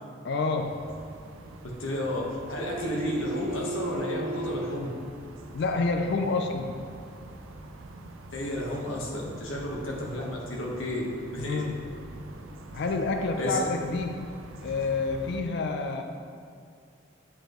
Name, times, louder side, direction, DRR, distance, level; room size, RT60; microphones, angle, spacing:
voice 1, 0.2-0.9 5.5-6.8 11.4-12.0 12.7-16.0, left 3 dB, 60° left, 5 dB, 0.4 m, -29 dB
sound 1, 0.6-15.4, right 1 dB, 90° right, 0.6 m, -45 dB
voice 2, 1.6-4.9 8.3-11.6 13.4-13.6, left 1 dB, 75° left, -2 dB, 1.2 m, -32 dB
sound 2, 2.6-4.9 7.5-7.6, right 2 dB, 30° right, 0.8 m, -35 dB
8.4 x 5.0 x 3.0 m, 2.2 s
head